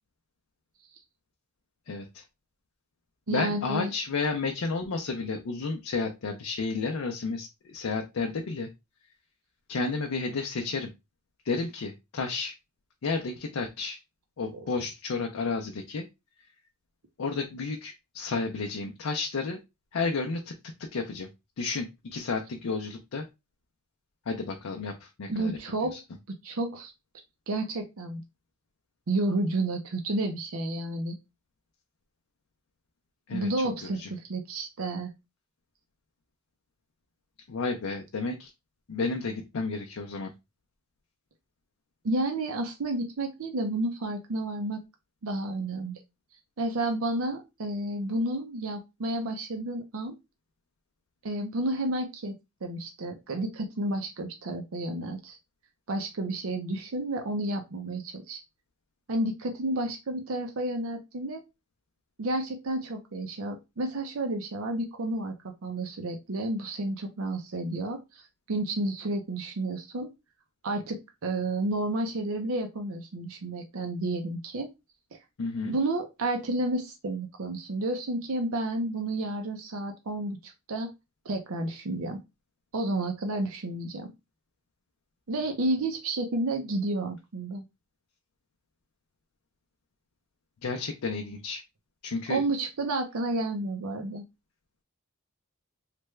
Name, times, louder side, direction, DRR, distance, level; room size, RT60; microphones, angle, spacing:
voice 1, 1.9-2.2 3.3-8.7 9.7-10.9 11.4-12.5 13.0-14.0 14.4-16.1 17.2-19.6 19.9-21.3 21.6-23.3 24.3-25.6 25.8-26.0 33.3-33.5 33.8-34.1 37.5-38.5 38.9-40.3 75.4-75.8 90.6-91.6 92.0-92.4, left 4 dB, 75° left, 3 dB, 0.5 m, -32 dB
voice 2, 3.3-3.9 14.5-14.7 25.3-26.0 26.3-26.9 27.5-28.2 29.1-31.1 33.3-35.1 42.0-44.8 45.2-46.0 46.6-50.2 51.2-55.4 55.9-58.4 59.1-61.4 62.2-70.1 70.6-74.7 75.1-75.2 75.6-80.9 81.2-82.2 82.7-84.1 85.3-87.6 92.3-94.2, right 2 dB, 75° right, 4 dB, 0.6 m, -31 dB
3.3 x 2.2 x 3.1 m, 0.24 s
head